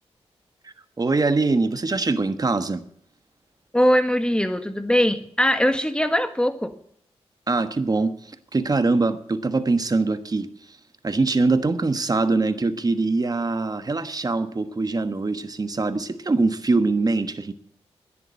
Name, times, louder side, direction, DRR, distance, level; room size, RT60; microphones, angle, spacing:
voice 1, 0.6-2.8 7.5-10.5 11.0-17.5, right 3 dB, 35° right, 1.3 m, -23 dB
voice 2, 3.7-6.7, equal, 10° left, 1.6 m, -21 dB
11.0 x 10.0 x 8.6 m
cardioid pair, 50°, 11 cm